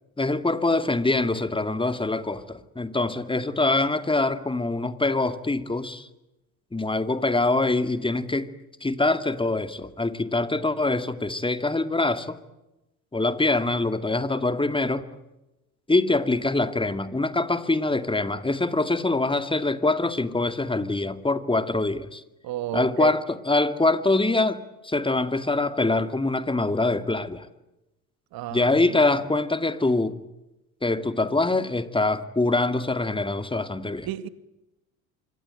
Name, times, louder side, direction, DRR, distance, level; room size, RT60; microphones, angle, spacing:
voice 1, 0.2-6.1 6.7-8.5 8.8-12.4 13.1-15.0 15.9-22.2 22.7-27.5 28.5-30.2 30.8-34.1, left 2 dB, 10° left, 2.2 m, -24 dB
voice 2, 22.4-23.1 28.3-29.0 34.0-34.3, right 13 dB, 55° right, 1.9 m, -32 dB
26.0 x 24.0 x 9.1 m
hypercardioid pair, 65°, 43 cm